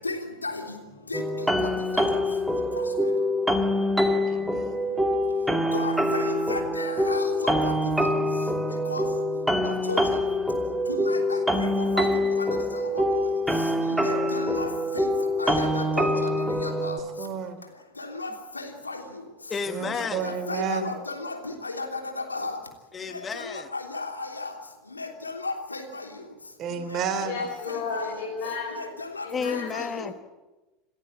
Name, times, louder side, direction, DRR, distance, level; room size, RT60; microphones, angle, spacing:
voice 1, 0.4-0.8 1.1-1.2 1.6-1.7 5.7-6.2 6.5-7.7 8.9-9.0 9.6-10.0 10.9-11.7 11.9-12.1 12.4-12.5 14.0-14.7 15.4-16.3 16.6-17.0 18.0-18.3 18.5-19.0 20.2-21.3 21.6-22.0 22.3-22.6 23.7-24.1 24.4-24.5 25.0-25.8 29.1-29.2 29.7-29.8, left 3 dB, 90° left, 3 dB, 3.2 m, -33 dB
sound 1, 1.1-17.0, left 1 dB, 5° right, 2.1 m, -25 dB
voice 2, 4.3-4.8 17.2-17.6 19.7-20.9 26.6-27.4, right 6 dB, 40° right, 9 dB, 3.2 m, -31 dB
voice 3, 19.5-20.2 22.9-23.7 29.3-30.1, left 5 dB, 25° left, 10 dB, 1.4 m, -31 dB
voice 4, 27.2-28.8 29.2-29.8, left 4 dB, 55° left, -1 dB, 5.9 m, -33 dB
28.0 x 14.5 x 8.6 m, 1.1 s
figure-of-eight pair, 80°, 0 cm